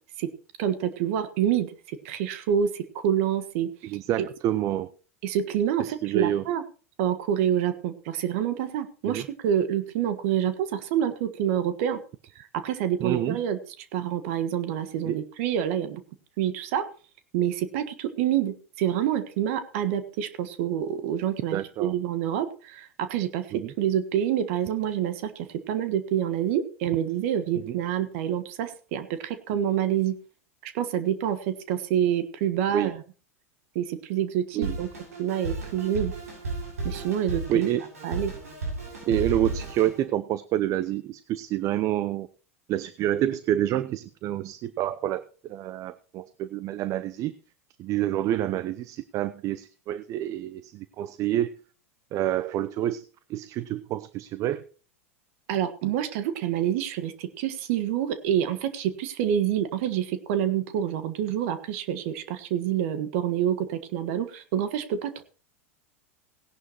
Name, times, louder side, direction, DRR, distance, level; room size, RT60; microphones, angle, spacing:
voice 1, 0.6-3.7 4.2-4.3 5.2-6.6 7.0-12.0 12.3-13.6 13.9-16.0 16.4-16.8 17.3-23.5 23.8-30.2 30.6-33.0 33.7-34.9 35.2-36.1 36.8-37.7 38.0-38.3 55.5-65.2, right 10 dB, 60° right, 11 dB, 1.4 m, -27 dB
voice 2, 3.8-4.9 5.8-6.4 9.0-9.3 13.0-13.4 15.0-15.2 21.5-21.9 23.5-23.7 27.7-27.8 32.7-32.9 34.5-34.8 37.5-37.8 39.1-42.3 42.7-47.3 47.8-51.5 52.1-53.0 53.3-54.6, right 12 dB, 45° right, 15 dB, 0.7 m, -28 dB
Drum kit, 34.6-40.0, right 3 dB, 90° right, 6.5 m, -34 dB
17.5 x 11.0 x 3.0 m, 0.37 s
hypercardioid pair, 95°, 8 cm